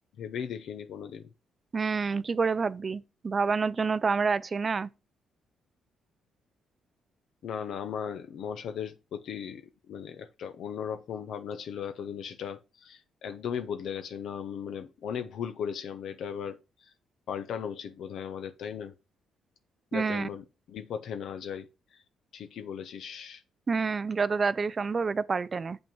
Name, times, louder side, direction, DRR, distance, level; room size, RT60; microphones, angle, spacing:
voice 1, 0.2-1.3 7.4-16.9 17.3-18.9 19.9-21.7 22.3-23.4, left 7 dB, 70° left, 0.8 m, -37 dB
voice 2, 1.7-4.9 19.9-20.3 23.7-25.8, right 5 dB, 35° right, 0.5 m, -28 dB
7.3 x 5.3 x 4.6 m
cardioid pair, 90°, 0 cm